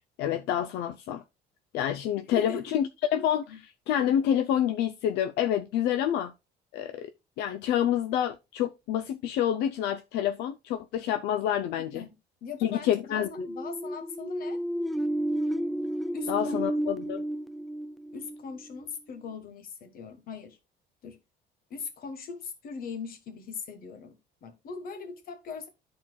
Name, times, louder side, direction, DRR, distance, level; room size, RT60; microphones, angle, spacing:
voice 1, 0.2-1.2 1.7-6.3 6.7-7.1 7.4-12.1 12.6-13.5 16.3-17.2, left 10 dB, 85° left, 0.5 m, -28 dB
voice 2, 2.3-2.7 3.5-3.6 11.9-12.1 12.4-14.6 16.1-16.9 18.1-20.6 21.0-21.2 21.7-25.7, left 5 dB, 60° left, 1.5 m, -40 dB
sound 1, 13.2-18.9, right 1 dB, ahead, 0.4 m, -32 dB
12.5 x 4.3 x 2.3 m
cardioid pair, 110°, 17 cm